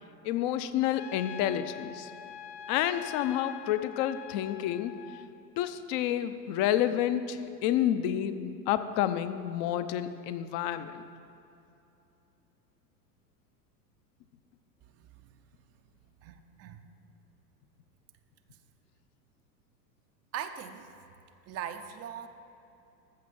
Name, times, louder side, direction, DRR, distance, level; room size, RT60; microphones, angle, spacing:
voice 1, 0.2-2.1 2.7-4.9 5.6-11.0, left 11 dB, 45° left, 11 dB, 0.8 m, -29 dB
Trumpet, 0.9-5.3, left 10 dB, 85° left, 0.7 m, -44 dB
voice 2, 16.2-16.8 20.3-20.9 21.5-22.3, right 9 dB, 30° right, 8 dB, 0.6 m, -40 dB
14.5 x 5.8 x 7.3 m, 2.8 s
hypercardioid pair, 105°, 49 cm